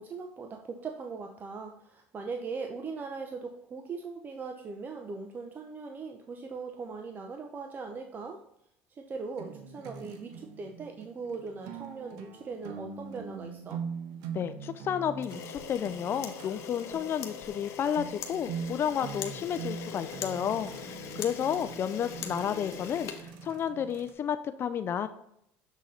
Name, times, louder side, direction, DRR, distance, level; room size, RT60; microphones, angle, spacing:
voice 1, 0.0-8.4 9.0-13.8, right 4 dB, 35° right, 4 dB, 0.7 m, -40 dB
sound 1, 9.4-24.1, right 6 dB, 75° right, 0.9 m, -43 dB
voice 2, 14.3-25.1, left 8 dB, 45° left, 11 dB, 0.4 m, -32 dB
Camera, 15.2-23.9, left 8 dB, 60° left, 0.9 m, -42 dB
7.2 x 3.8 x 4.2 m, 0.77 s
supercardioid pair, 95°, 6 cm